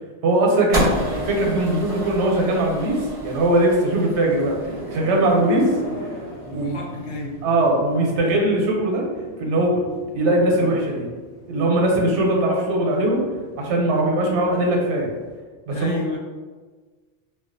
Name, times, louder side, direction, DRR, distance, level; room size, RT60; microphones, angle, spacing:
voice 1, 0.2-5.8 6.5-6.7 7.4-9.1 9.4-9.8 10.1-11.1 11.5-13.2 13.6-15.1 15.7-16.0, right 1 dB, 80° right, 0 dB, 0.9 m, -20 dB
sound 1, 0.7-7.1, equal, 40° right, 0.5 m, -31 dB
sound 2, 4.4-15.4, equal, 45° left, 0.8 m, -38 dB
voice 2, 6.5-7.4 15.7-16.2, left 1 dB, 85° left, -1 dB, 0.9 m, -32 dB
2.3 x 2.2 x 2.5 m, 1.4 s
omnidirectional pair, 1.2 m